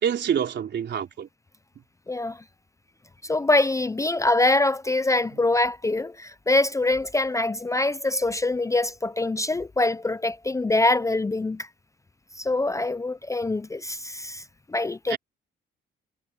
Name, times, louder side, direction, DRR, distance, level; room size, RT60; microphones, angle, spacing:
voice 1, 0.0-1.3 15.1-15.2, right 8 dB, 60° right, 3.7 m, -26 dB
voice 2, 2.1-2.4 3.2-11.7 12.4-14.4 14.7-15.2, left 2 dB, 15° left, 0.6 m, -24 dB
cardioid pair, 90°, 20 cm